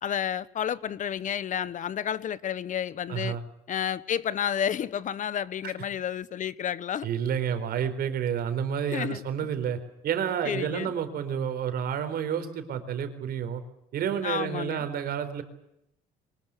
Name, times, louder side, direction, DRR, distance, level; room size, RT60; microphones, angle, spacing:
voice 1, 0.0-3.4 3.7-7.1 8.9-9.2 10.4-10.9 14.2-14.9, left 9 dB, 50° left, 1.1 m, -31 dB
voice 2, 3.1-3.4 7.0-9.8 10.0-13.6 13.9-15.4, right 8 dB, 65° right, 4.2 m, -30 dB
24.0 x 21.0 x 8.4 m
cardioid pair, 110°, 17 cm